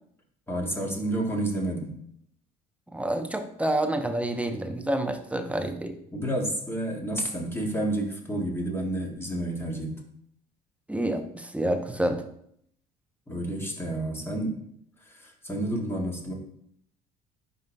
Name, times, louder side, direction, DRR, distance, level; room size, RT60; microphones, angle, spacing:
voice 1, 0.5-1.9 6.1-10.0 13.3-14.5 15.1-16.3, right 1 dB, 10° left, -1 dB, 1.9 m, -30 dB
voice 2, 2.9-6.0 10.9-12.2, right 1 dB, 5° right, 7 dB, 0.8 m, -28 dB
10.5 x 4.0 x 2.3 m, 0.68 s
hypercardioid pair, 60°, 21 cm